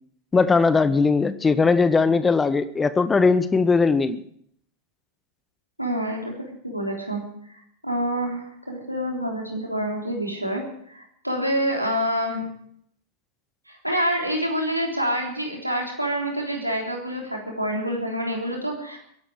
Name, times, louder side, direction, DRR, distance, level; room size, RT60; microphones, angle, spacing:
voice 1, 0.3-4.2, left 4 dB, 15° left, 15 dB, 0.7 m, -19 dB
voice 2, 5.8-6.3 6.6-7.2 7.5-12.4 13.7-19.0, equal, 90° right, 0 dB, 3.5 m, -27 dB
23.0 x 11.5 x 4.9 m, 0.68 s
figure-of-eight pair, 90°, 0 cm